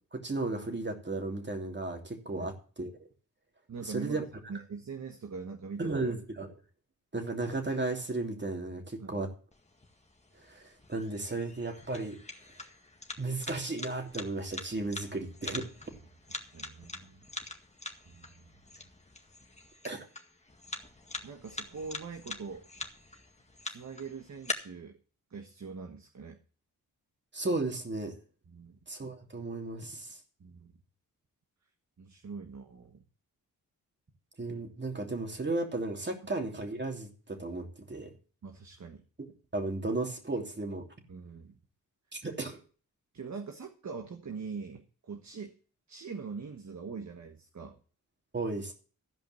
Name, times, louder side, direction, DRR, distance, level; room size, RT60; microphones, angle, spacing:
voice 1, 0.1-2.9 3.8-4.2 5.8-6.6 7.1-9.3 10.4-12.2 13.2-15.7 19.8-20.1 27.3-28.1 28.9-30.2 34.4-38.1 39.5-40.8 42.1-42.6 48.3-48.7, right 2 dB, 30° right, 3 dB, 3.1 m, -34 dB
voice 2, 3.7-4.2 4.5-6.0 9.0-9.2 16.3-17.2 18.0-18.5 21.2-22.6 23.6-25.0 25.3-26.4 28.5-28.8 30.4-30.7 32.0-33.0 38.4-39.0 41.1-41.6 43.1-45.5 45.9-47.8, right 5 dB, 50° right, 5 dB, 1.5 m, -43 dB
sound 1, 9.5-24.5, left 2 dB, 20° left, 1.9 m, -44 dB
14.5 x 5.2 x 7.7 m, 0.40 s
cardioid pair, 60°, 36 cm